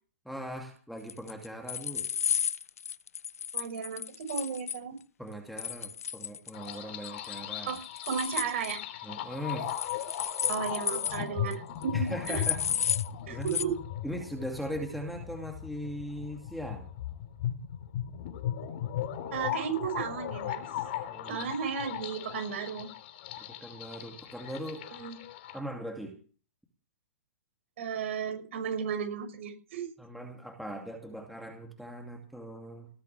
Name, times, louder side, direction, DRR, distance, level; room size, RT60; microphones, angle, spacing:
voice 1, 0.2-2.1 5.2-7.8 9.0-9.7 11.9-12.6 13.3-13.6 14.0-16.9 21.1-21.5 23.4-24.9 25.5-26.2 30.0-32.9, equal, ahead, 2 dB, 2.4 m, -39 dB
sound 1, 1.1-4.8 5.6-6.7 7.0-7.4 7.7-8.8 9.7-11.2 11.5-11.6 11.8-11.9 12.2-13.1 13.5-13.6, left 8 dB, 85° left, 0.8 m, -33 dB
voice 2, 3.5-5.0 7.7-7.8 8.1-8.8 10.5-12.4 13.3-13.8 19.3-20.6 21.3-22.9 24.9-25.2 27.8-29.9, right 7 dB, 60° right, 6 dB, 6.2 m, -34 dB
sound 2, 6.5-25.6, left 11 dB, 45° left, 3.0 m, -38 dB
18.5 x 8.4 x 7.1 m, 0.39 s
hypercardioid pair, 150°, 8 cm